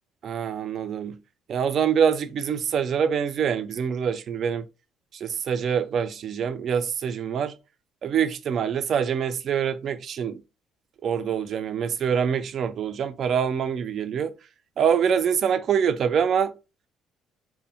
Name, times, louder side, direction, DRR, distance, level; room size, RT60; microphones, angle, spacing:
voice 1, 0.2-1.2 1.5-4.7 5.1-7.5 8.0-10.4 11.0-14.3 14.8-16.5, right 7 dB, 55° right, 0.3 m, -25 dB
2.6 x 2.0 x 2.7 m
cardioid pair, 85°, 0 cm